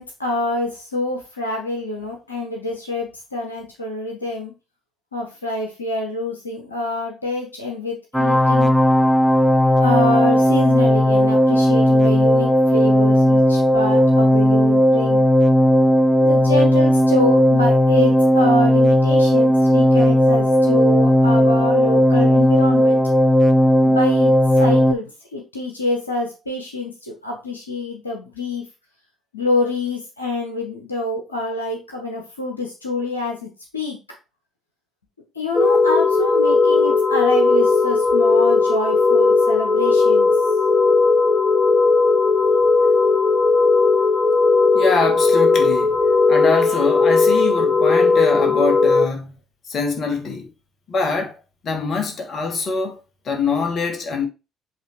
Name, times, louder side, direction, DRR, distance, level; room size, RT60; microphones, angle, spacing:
voice 1, 0.0-4.5 5.1-8.7 9.8-15.3 16.2-23.0 23.8-28.6 29.3-34.0 35.3-40.3, left 2 dB, 85° left, 1.2 m, -26 dB
sound 1, 8.1-24.9, equal, 5° left, 0.9 m, -15 dB
sound 2, 35.5-49.1, left 4 dB, 30° left, 1.2 m, -16 dB
voice 2, 44.7-46.0 46.3-49.3 49.7-50.5 50.9-51.3 51.6-53.0 53.2-54.3, left 4 dB, 45° left, 1.7 m, -23 dB
8.0 x 3.5 x 4.6 m
figure-of-eight pair, 50°, 0 cm